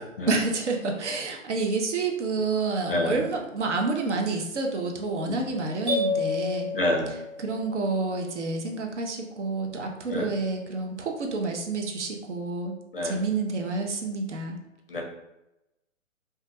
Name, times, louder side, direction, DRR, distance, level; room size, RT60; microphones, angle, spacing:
voice 1, 0.3-6.7 7.1-12.7 13.0-14.6, right 3 dB, 60° right, 2 dB, 0.5 m, -29 dB
voice 2, 2.9-3.2 5.2-5.4 6.7-7.1 10.1-10.2 12.9-13.2 14.9-15.0, left 1 dB, 45° left, 0 dB, 0.5 m, -27 dB
sound 1, 5.9-7.8, left 3 dB, 25° right, 0.8 m, -29 dB
2.2 x 2.1 x 2.7 m, 0.93 s
figure-of-eight pair, 135°, 41 cm